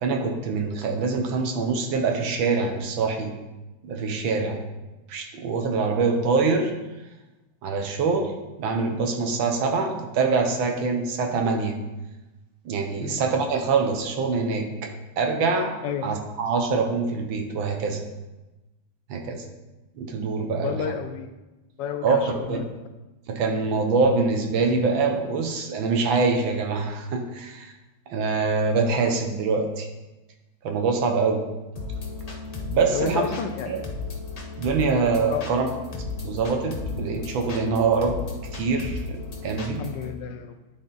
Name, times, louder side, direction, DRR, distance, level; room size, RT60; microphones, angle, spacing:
voice 1, 0.0-3.4 3.8-4.6 5.1-6.7 7.6-8.3 8.6-11.8 12.6-15.7 16.0-18.0 19.1-19.4 19.9-20.8 22.0-22.7 23.3-27.7 28.1-29.9 30.6-31.5 32.7-33.3 33.7-33.8 34.6-35.7 36.2-38.2 38.5-39.2 39.4-39.8, right 4 dB, 75° right, 4 dB, 1.6 m, -24 dB
voice 2, 20.6-21.3 21.8-22.6 32.9-33.7 35.3-35.5 39.8-40.5, left 7 dB, 75° left, 8 dB, 1.1 m, -31 dB
sound 1, 31.8-40.1, left 4 dB, 55° left, 0.4 m, -35 dB
9.8 x 4.4 x 3.9 m, 1.1 s
omnidirectional pair, 2.2 m